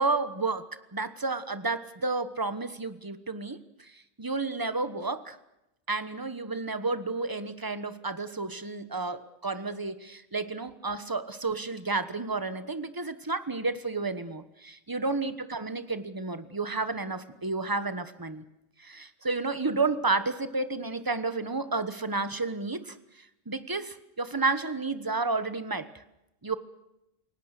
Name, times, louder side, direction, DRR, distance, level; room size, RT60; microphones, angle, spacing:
voice 1, 0.0-5.4 5.9-18.4 18.8-26.0 26.4-26.6, right 3 dB, 15° right, 12 dB, 1.2 m, -31 dB
29.0 x 18.0 x 6.7 m, 0.87 s
omnidirectional pair, 1.5 m